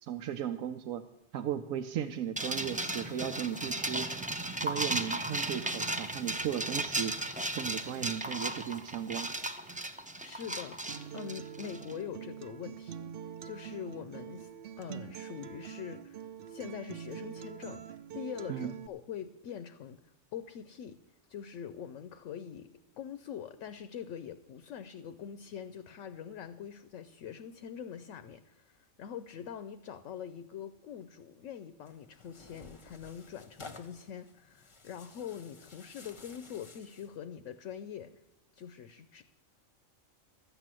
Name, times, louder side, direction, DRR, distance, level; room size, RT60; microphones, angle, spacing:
voice 1, 0.0-1.1 1.3-4.1 4.6-7.2 7.6-9.3 18.5-18.7, right 10 dB, 80° right, 7 dB, 1.0 m, -36 dB
sound 1, 2.4-11.9, right 1 dB, 15° right, 0.3 m, -35 dB
voice 2, 10.2-13.1 13.4-14.5 14.8-20.0 20.3-21.0 21.3-22.7 23.0-38.1 38.5-39.2, left 8 dB, 70° left, 11 dB, 0.9 m, -44 dB
Acoustic guitar, 10.9-18.9, right 9 dB, 60° right, 0.6 m, -44 dB
Tearing, 31.8-37.2, left 3 dB, 25° left, 0.8 m, -53 dB
13.0 x 8.1 x 7.5 m, 0.97 s
omnidirectional pair, 1.4 m